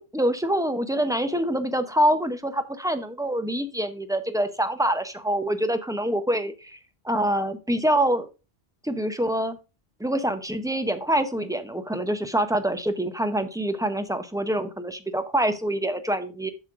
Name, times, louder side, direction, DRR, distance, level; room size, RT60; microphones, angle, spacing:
voice 1, 0.0-6.8 7.0-8.3 8.8-9.6 10.0-16.5, right 1 dB, 5° right, 8 dB, 0.8 m, -25 dB
7.7 x 6.3 x 3.7 m, 0.30 s
omnidirectional pair, 1.0 m